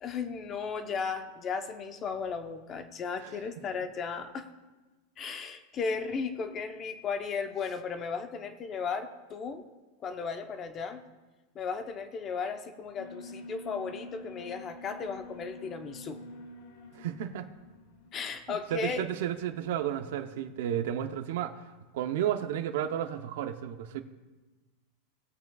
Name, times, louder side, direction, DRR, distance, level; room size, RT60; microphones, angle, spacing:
voice 1, 0.0-4.5 5.2-9.7 10.0-11.0 11.5-16.2 18.1-19.0, left 5 dB, 25° left, 7 dB, 0.8 m, -35 dB
Alarm, 12.9-20.1, left 2 dB, 85° left, 2.3 m, -48 dB
voice 2, 16.9-17.5 18.5-21.5 21.9-24.0, right 10 dB, 70° right, 7 dB, 0.7 m, -32 dB
19.5 x 8.1 x 2.4 m, 1.2 s
supercardioid pair, 155°, 0 cm